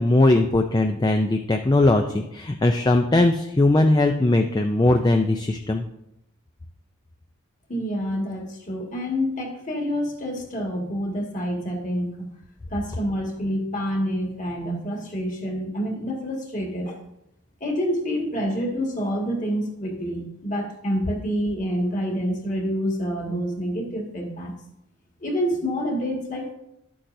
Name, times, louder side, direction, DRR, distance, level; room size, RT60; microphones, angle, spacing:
voice 1, 0.0-5.8, left 2 dB, 20° left, 5 dB, 0.4 m, -19 dB
voice 2, 7.7-12.3 12.7-17.0 17.6-24.5 25.2-26.5, equal, 35° left, 0 dB, 1.8 m, -27 dB
11.5 x 8.5 x 2.6 m, 0.81 s
head